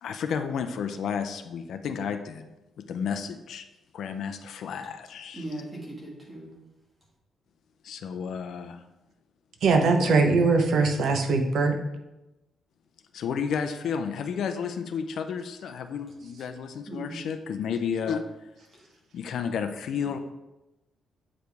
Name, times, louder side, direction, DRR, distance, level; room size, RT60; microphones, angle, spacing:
voice 1, 0.0-2.5 2.8-3.6 3.9-5.4 7.8-8.8 9.8-10.2 13.1-18.3 19.1-20.2, left 7 dB, 70° left, 7 dB, 0.5 m, -32 dB
voice 2, 5.3-6.5 16.9-17.2 18.7-18.8, right 1 dB, 15° right, -4 dB, 1.6 m, -38 dB
voice 3, 9.6-11.8, right 4 dB, 65° right, 4 dB, 0.9 m, -21 dB
7.8 x 5.0 x 3.4 m, 1.0 s
cardioid pair, 150°, 0 cm